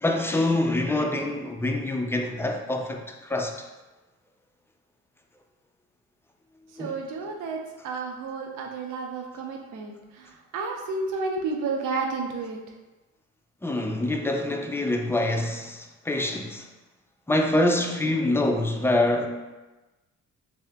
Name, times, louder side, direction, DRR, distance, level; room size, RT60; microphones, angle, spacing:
voice 1, 0.0-3.5 6.8-6.9 13.6-16.7 17.3-19.3, left 1 dB, 10° left, 2 dB, 0.4 m, -25 dB
voice 2, 6.8-7.6 7.8-12.6, right 4 dB, 80° right, 1 dB, 0.6 m, -31 dB
3.2 x 2.8 x 3.5 m, 1.1 s
cardioid pair, 90°, 30 cm